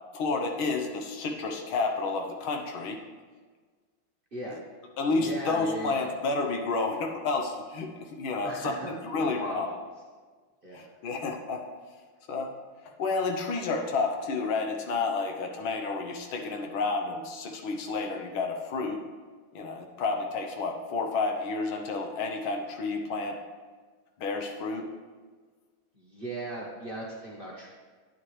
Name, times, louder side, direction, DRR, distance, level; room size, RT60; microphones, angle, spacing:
voice 1, 0.1-3.0 4.5-4.6 5.0-8.7 9.0-9.7 10.7-11.6 12.3-12.5 12.8-19.0 19.6-23.4 24.2-24.9, left 3 dB, 75° left, 3 dB, 1.7 m, -30 dB
voice 2, 5.2-6.1 8.4-9.8 10.6-10.9 20.0-20.2 25.9-27.7, right 2 dB, 30° right, -4 dB, 1.2 m, -38 dB
10.5 x 9.2 x 3.2 m, 1.5 s
omnidirectional pair, 2.3 m